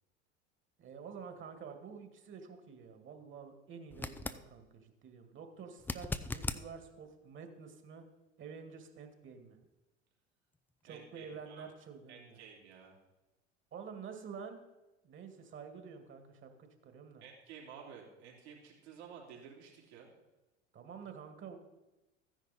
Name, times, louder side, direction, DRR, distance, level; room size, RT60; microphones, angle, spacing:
voice 1, 0.8-8.0 8.4-9.6 10.8-12.4 13.7-14.6 15.0-17.2 20.7-21.6, right 6 dB, 35° right, 6 dB, 2.1 m, -49 dB
sound 1, 3.9-4.4 5.8-6.6 9.6-9.7, left 2 dB, 5° left, 0.4 m, -38 dB
voice 2, 10.9-11.7 12.1-13.0 17.2-20.1, right 7 dB, 65° right, -2 dB, 3.1 m, -52 dB
14.5 x 10.0 x 4.2 m, 1.0 s
figure-of-eight pair, 75°, 35 cm